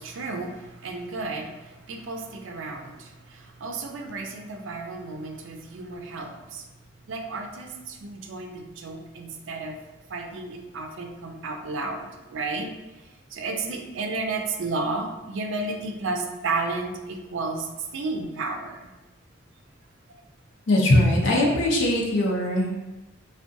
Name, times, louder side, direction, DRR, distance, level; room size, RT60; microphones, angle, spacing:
voice 1, 0.0-6.6 7.1-9.8 10.1-12.7 13.3-17.7 17.9-18.9, right 3 dB, 80° right, 2 dB, 0.4 m, -32 dB
voice 2, 20.7-22.8, left 1 dB, 75° left, -2 dB, 0.5 m, -21 dB
3.5 x 2.2 x 2.5 m, 1.1 s
head